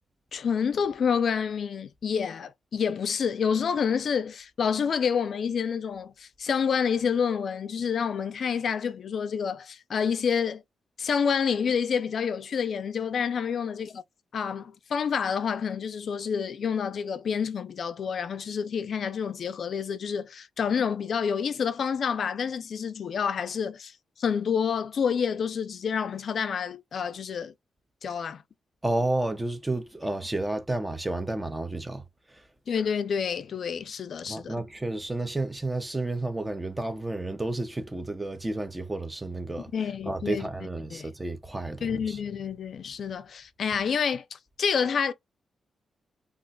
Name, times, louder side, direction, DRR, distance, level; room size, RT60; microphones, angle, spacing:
voice 1, 0.3-10.6 11.0-14.0 14.3-27.5 28.0-28.4 32.7-34.6 39.7-40.5 40.9-41.1 41.8-45.1, left 6 dB, 60° left, 0.4 m, -28 dB
voice 2, 28.8-32.0 32.3-32.4 34.3-39.7 40.1-42.2, right 2 dB, 15° right, 0.6 m, -31 dB
2.4 x 2.2 x 3.9 m
cardioid pair, 110°, 0 cm